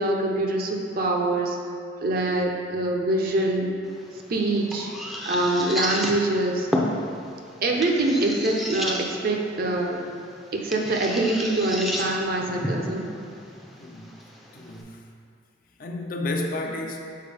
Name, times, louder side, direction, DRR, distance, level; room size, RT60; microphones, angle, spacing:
voice 1, 0.0-1.6 2.0-3.7 4.3-4.9 5.2-6.7 7.6-10.0 10.5-13.0, right 2 dB, 50° right, 1 dB, 0.6 m, -24 dB
sound 1, 3.8-14.8, equal, ahead, 0.5 m, -33 dB
voice 2, 13.8-14.1 14.5-15.0 15.8-17.1, left 2 dB, 50° left, 2 dB, 0.5 m, -31 dB
6.6 x 4.5 x 3.4 m, 2.3 s
head